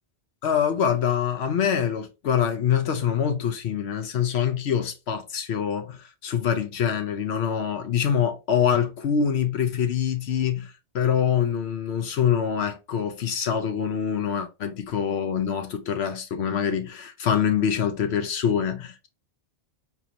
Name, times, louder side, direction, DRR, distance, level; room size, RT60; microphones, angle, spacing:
voice 1, 0.4-19.1, left 8 dB, 80° left, 0.9 m, -25 dB
5.0 x 2.9 x 2.8 m
omnidirectional pair, 1.1 m